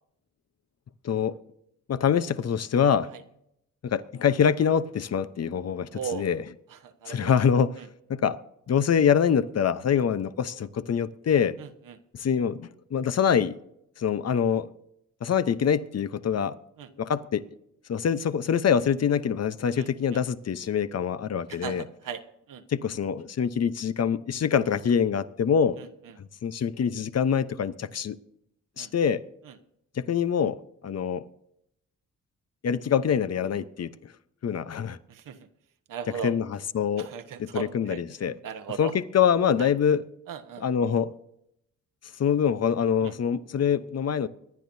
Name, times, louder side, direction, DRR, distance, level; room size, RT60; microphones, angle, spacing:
voice 1, 1.9-3.1 3.8-6.4 7.1-7.7 8.1-8.4 8.7-11.6 12.1-13.6 14.0-14.7 15.2-16.6 17.0-17.4 17.9-21.8 22.7-25.8 26.2-28.2 28.8-29.2 30.0-30.6 30.8-31.3 32.6-34.1 34.4-35.0 36.2-37.1 37.4-38.4 38.8-40.0 40.6-41.1 42.2-44.3, left 7 dB, 50° left, 0.8 m, -25 dB
voice 2, 5.9-6.2 6.7-7.4 7.8-7.9 11.6-12.0 16.8-16.9 19.8-20.2 21.5-22.2 22.5-22.6 25.8-25.9 28.8-28.9 29.4-29.5 35.1-35.4 35.9-36.3 37.0-38.0 38.4-38.9 39.6-39.7 40.3-40.7 43.0-43.1, right 7 dB, 80° right, 1.3 m, -37 dB
25.0 x 10.5 x 2.7 m
cardioid pair, 70°, 32 cm